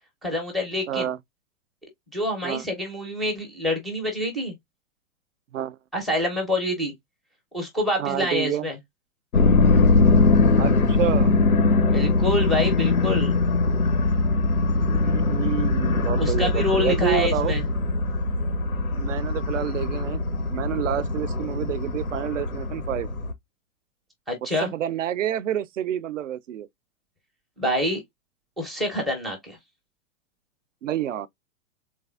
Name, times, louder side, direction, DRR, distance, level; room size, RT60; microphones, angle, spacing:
voice 1, 0.2-1.1 2.1-4.5 5.9-6.9 7.5-8.8 11.9-13.3 16.2-17.7 24.3-24.7 27.6-28.0 28.6-29.6, left 1 dB, ahead, 0.4 m, -26 dB
voice 2, 0.9-1.2 2.4-2.6 5.5-5.8 8.0-8.7 10.6-11.3 15.0-17.5 18.9-20.2 20.5-23.1 24.6-26.7 30.8-31.3, right 11 dB, 65° right, 0.5 m, -28 dB
sound 1, 9.3-23.3, left 3 dB, 90° left, 0.7 m, -21 dB
3.4 x 3.2 x 2.2 m
figure-of-eight pair, 115°, 41 cm